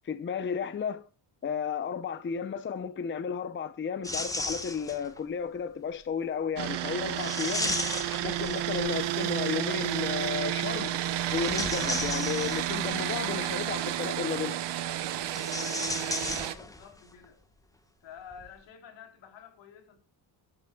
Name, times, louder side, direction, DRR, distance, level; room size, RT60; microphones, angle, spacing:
voice 1, 0.0-1.0 1.4-7.8 8.2-10.9 11.3-14.6, left 6 dB, 25° left, 0.7 m, -33 dB
sound 1, 4.0-5.2 7.1-9.0 11.2-13.0 15.2-17.0 17.2-17.3 18.3-18.5, left 2 dB, 10° left, 1.3 m, -35 dB
sound 2, 6.6-16.5, right 12 dB, 70° right, 1.2 m, -31 dB
voice 2, 15.6-17.4 18.0-20.0, left 8 dB, 80° left, 3.7 m, -49 dB
22.0 x 9.8 x 2.3 m
cardioid pair, 145°, 44 cm